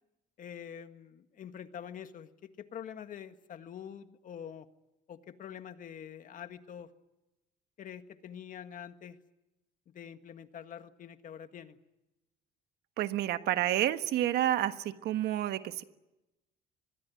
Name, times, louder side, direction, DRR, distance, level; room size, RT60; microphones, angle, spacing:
voice 1, 0.4-4.7 5.1-6.9 7.8-9.2 9.9-11.8, left 8 dB, 50° left, 9 dB, 1.8 m, -46 dB
voice 2, 13.0-15.8, right 12 dB, 75° right, 10 dB, 1.4 m, -29 dB
24.5 x 20.5 x 9.4 m, 0.98 s
cardioid pair, 110°, 17 cm